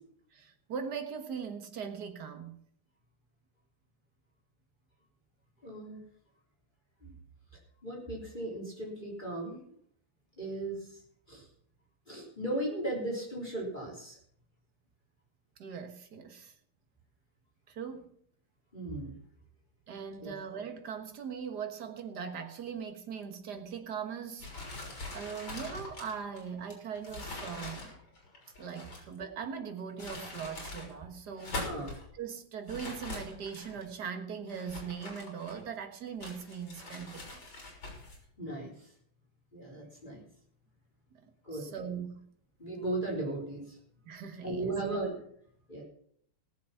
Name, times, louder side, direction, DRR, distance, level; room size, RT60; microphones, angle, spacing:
voice 1, 0.3-2.6 15.6-16.6 17.7-18.1 19.9-28.0 28.6-31.7 32.1-37.4 41.5-42.3 44.1-44.7, right 7 dB, 50° right, 6 dB, 1.8 m, -40 dB
voice 2, 5.6-6.0 7.0-7.1 7.8-9.6 10.4-11.0 11.3-11.5 12.1-14.2 18.7-19.2 20.2-20.3 31.6-31.9 38.4-38.9 39.5-40.2 41.4-41.7 42.6-43.8 44.4-45.2 45.7-45.8, right 2 dB, 20° left, -3 dB, 3.9 m, -36 dB
sound 1, 24.4-29.2 29.8-30.9 31.3-32.0 32.7-33.9 34.5-35.8 36.2-38.2, left 2 dB, 60° left, 4.5 m, -43 dB
18.5 x 7.1 x 5.7 m, 0.65 s
omnidirectional pair, 2.4 m